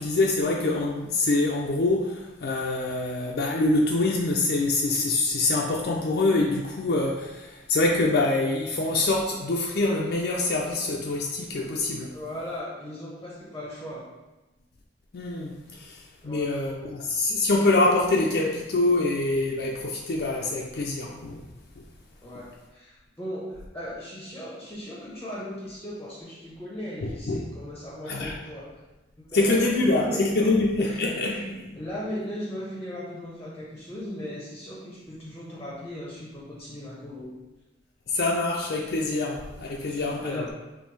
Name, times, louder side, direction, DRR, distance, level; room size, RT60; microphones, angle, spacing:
voice 1, 0.0-12.1 15.1-21.4 21.8-21.9 27.0-27.5 28.1-28.3 29.3-31.3 38.1-40.5, left 2 dB, 60° left, -1 dB, 0.4 m, -25 dB
voice 2, 12.1-14.1 16.2-16.6 22.2-28.8 29.2-37.3 39.8-40.5, left 1 dB, 15° left, -5 dB, 0.7 m, -38 dB
5.2 x 3.2 x 3.2 m, 1.1 s
head